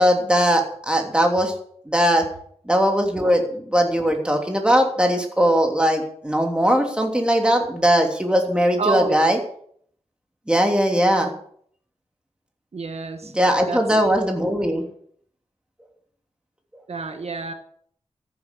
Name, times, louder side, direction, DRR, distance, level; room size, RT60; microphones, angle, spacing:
voice 1, 0.0-1.5 1.8-2.2 2.6-9.4 10.5-11.3 13.3-14.8, equal, 10° right, 2 dB, 3.2 m, -19 dB
voice 2, 8.8-9.2 12.7-13.3 13.6-13.8 16.9-17.5, right 4 dB, 65° right, 6 dB, 1.5 m, -28 dB
14.0 x 10.0 x 7.2 m, 0.62 s
wide cardioid pair, 105°, 11 cm